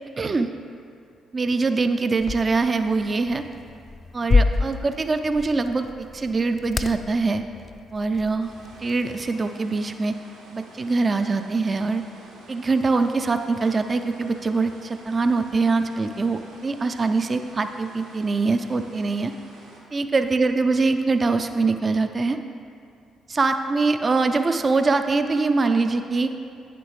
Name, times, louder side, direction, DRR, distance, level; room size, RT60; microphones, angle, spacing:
voice 1, 0.2-0.5 1.3-3.4 4.1-5.9 6.1-7.4 7.9-8.5 8.8-10.1 10.5-12.0 12.5-19.3 19.9-22.4 23.3-26.3, right 3 dB, 35° right, 8 dB, 0.4 m, -23 dB
sound 1, 2.2-9.3, left 3 dB, 40° left, 0.3 m, -28 dB
sound 2, 8.4-19.8, right 2 dB, 75° right, 1.3 m, -49 dB
9.2 x 6.8 x 3.2 m, 2.4 s
hypercardioid pair, 45°, 0 cm